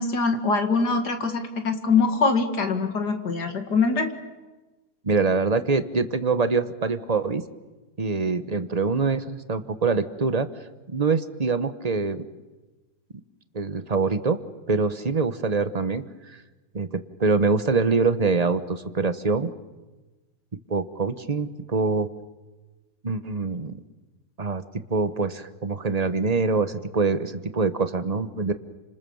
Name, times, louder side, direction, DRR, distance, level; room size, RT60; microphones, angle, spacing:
voice 1, 0.0-4.1, left 4 dB, 70° left, 6 dB, 2.6 m, -23 dB
voice 2, 5.0-7.4 8.0-10.5 10.9-12.2 13.5-14.4 14.7-16.4 16.7-19.5 20.7-22.1 23.0-23.8 24.4-28.5, right 4 dB, 25° right, 11 dB, 1.0 m, -24 dB
30.0 x 26.5 x 7.1 m, 1.2 s
omnidirectional pair, 1.8 m